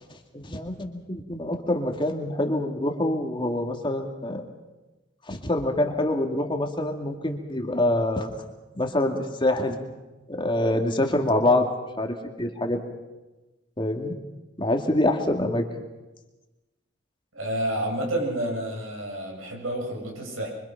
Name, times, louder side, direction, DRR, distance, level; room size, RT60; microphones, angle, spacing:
voice 1, 0.3-4.4 5.3-8.3 8.8-9.8 10.3-11.7 12.0-12.8 13.8-14.1 14.6-15.6, left 1 dB, 25° left, 3 dB, 2.2 m, -25 dB
voice 2, 17.3-20.5, right 1 dB, 85° right, 0 dB, 7.8 m, -29 dB
25.0 x 25.0 x 5.8 m, 1.1 s
head